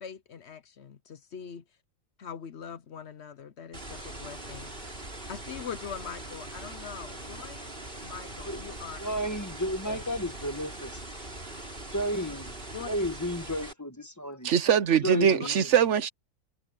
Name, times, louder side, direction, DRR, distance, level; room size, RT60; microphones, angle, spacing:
voice 1, 0.0-1.6 2.2-4.7 5.3-7.7 8.0-9.0 9.2-9.3 9.9-10.0 12.7-12.9 15.4-15.5, left 7 dB, 60° left, 1.0 m, -42 dB
sound 1, 3.7-13.7, right 1 dB, 45° right, 4.5 m, -41 dB
voice 2, 9.0-11.0 11.9-14.5 15.0-15.7, equal, 15° left, 1.3 m, -33 dB
voice 3, 14.4-16.1, right 8 dB, 65° right, 1.0 m, -22 dB
omnidirectional pair, 1.4 m